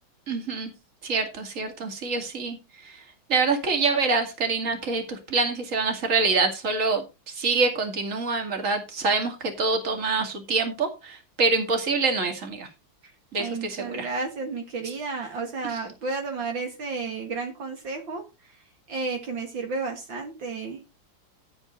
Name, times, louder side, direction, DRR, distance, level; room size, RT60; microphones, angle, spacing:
voice 1, 0.3-0.7 1.0-2.6 2.8-3.0 3.3-12.7 13.3-14.1 15.7-15.8, right 4 dB, 40° right, 4 dB, 2.7 m, -26 dB
voice 2, 13.4-18.2 18.9-20.8, right 4 dB, 65° right, 3 dB, 2.5 m, -32 dB
10.5 x 8.9 x 4.1 m, 0.27 s
omnidirectional pair, 2.3 m